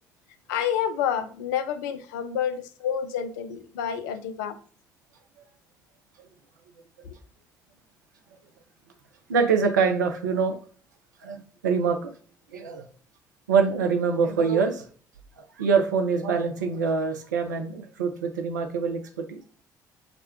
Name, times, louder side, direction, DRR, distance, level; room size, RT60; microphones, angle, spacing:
voice 1, 0.5-4.6 7.0-7.1, left 8 dB, 70° left, 7 dB, 0.4 m, -29 dB
voice 2, 9.3-10.6 11.2-12.1 12.5-12.9 13.5-14.9 15.4-19.4, right 5 dB, 80° right, 5 dB, 0.4 m, -24 dB
2.4 x 2.1 x 3.3 m, 0.43 s
figure-of-eight pair, 50°, 10 cm